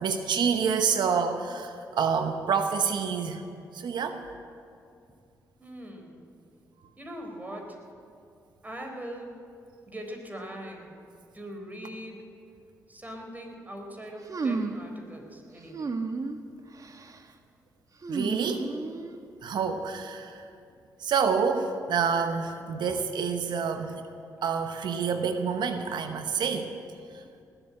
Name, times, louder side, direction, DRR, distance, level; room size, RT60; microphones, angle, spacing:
voice 1, 0.0-3.4 3.7-4.2 18.1-18.7 19.4-20.4 21.0-24.0 24.4-26.7, right 6 dB, 70° right, 8 dB, 1.0 m, -27 dB
voice 2, 5.6-6.2 7.0-7.8 8.6-9.4 9.9-10.9 11.3-12.2 12.9-15.9 20.7-20.8, equal, 20° right, 3 dB, 3.8 m, -41 dB
sound 1, 14.3-14.9 15.7-16.4 16.8-17.2 18.0-19.2, right 4 dB, 45° right, 1.2 m, -32 dB
18.5 x 8.2 x 8.7 m, 2.4 s
supercardioid pair, 50°, 8 cm